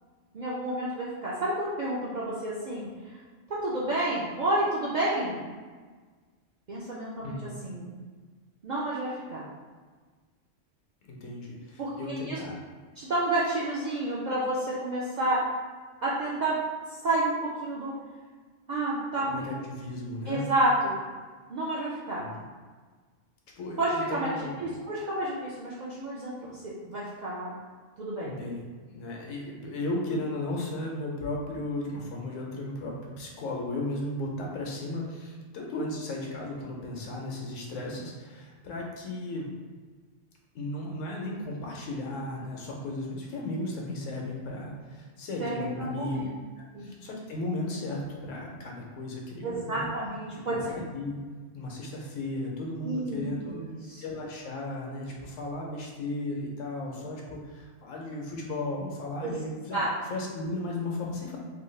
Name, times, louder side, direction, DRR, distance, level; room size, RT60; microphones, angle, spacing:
voice 1, 0.3-2.9 3.5-5.4 6.7-7.4 7.6-7.9 8.6-9.4 11.8-12.4 13.0-15.4 16.0-16.6 17.0-17.9 18.7-19.4 20.3-21.0 21.5-22.3 23.8-27.5 28.0-28.3 45.4-46.3 46.7-46.9 49.4-50.6 52.8-54.0 59.2-59.4 59.7-59.9, right 1 dB, 65° right, -7 dB, 0.4 m, -30 dB
voice 2, 7.2-7.6 11.1-12.6 19.3-20.5 22.2-22.4 23.6-24.5 28.2-28.6 28.9-39.5 40.5-46.2 46.8-49.9 50.4-51.2 51.5-53.6 54.0-59.8 60.1-61.4, left 2 dB, 90° left, -1 dB, 1.0 m, -35 dB
3.2 x 3.0 x 2.2 m, 1.4 s
omnidirectional pair, 1.3 m